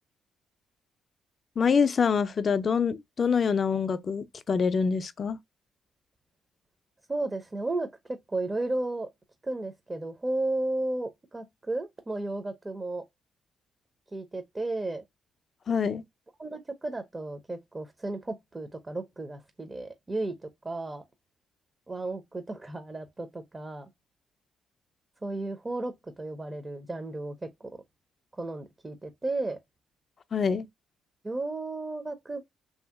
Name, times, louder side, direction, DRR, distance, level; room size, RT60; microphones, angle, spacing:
voice 1, 1.6-5.4 15.7-16.0 30.3-30.7, left 6 dB, 45° left, 0.4 m, -25 dB
voice 2, 7.1-7.9 8.3-9.1 9.4-13.0 14.1-15.0 16.4-21.0 21.9-23.9 25.2-27.7 28.4-29.6 31.2-32.4, right 2 dB, 20° right, 0.5 m, -33 dB
2.8 x 2.6 x 2.3 m
cardioid pair, 90°, 0 cm